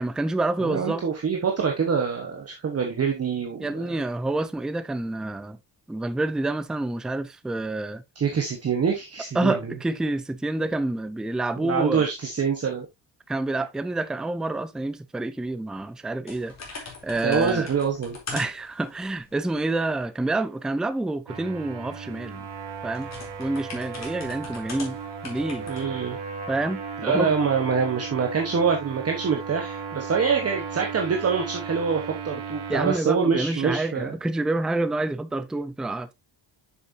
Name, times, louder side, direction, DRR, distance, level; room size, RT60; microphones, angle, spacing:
voice 1, 0.0-1.0 3.6-5.6 5.9-8.0 9.3-12.0 13.3-17.7 18.3-22.5 22.8-23.1 23.4-25.0 25.2-25.7 26.5-27.3 32.7-36.1, right 2 dB, ahead, 0.3 m, -28 dB
voice 2, 0.6-4.0 8.2-9.5 11.6-12.9 17.2-18.2 25.7-26.2 27.0-34.1, right 6 dB, 35° right, 1.2 m, -25 dB
sound 1, 16.3-20.0 22.1-25.8, left 4 dB, 35° left, 2.7 m, -41 dB
sound 2, 21.3-33.0, right 6 dB, 70° right, 1.4 m, -36 dB
7.6 x 6.6 x 2.7 m
wide cardioid pair, 180°, 43 cm